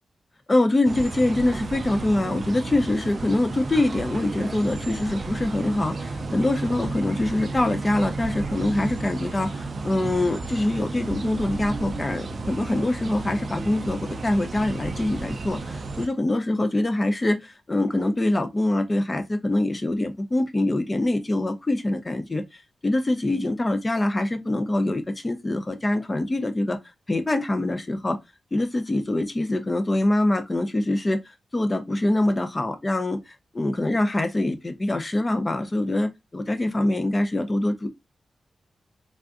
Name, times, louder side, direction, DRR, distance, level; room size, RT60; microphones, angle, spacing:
voice 1, 0.5-26.8 27.1-28.2 28.5-31.2 31.5-37.9, left 1 dB, 20° left, 0.4 m, -24 dB
sound 1, 0.8-16.1, right 3 dB, 40° right, 0.4 m, -33 dB
3.4 x 2.5 x 2.3 m
wide cardioid pair, 140°, 0 cm